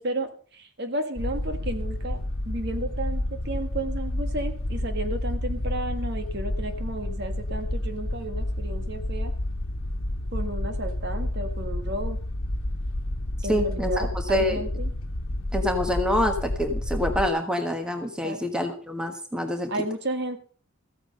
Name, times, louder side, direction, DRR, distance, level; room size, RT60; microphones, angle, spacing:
voice 1, 0.0-9.3 10.3-12.2 13.4-14.9 18.2-18.4 19.7-20.4, right 1 dB, 50° right, 8 dB, 1.6 m, -33 dB
sound 1, 1.2-17.3, left 1 dB, 75° left, 1.2 m, -30 dB
voice 2, 13.5-14.6 15.5-19.7, left 1 dB, 5° right, 6 dB, 1.3 m, -26 dB
14.5 x 9.0 x 5.4 m, 0.42 s
head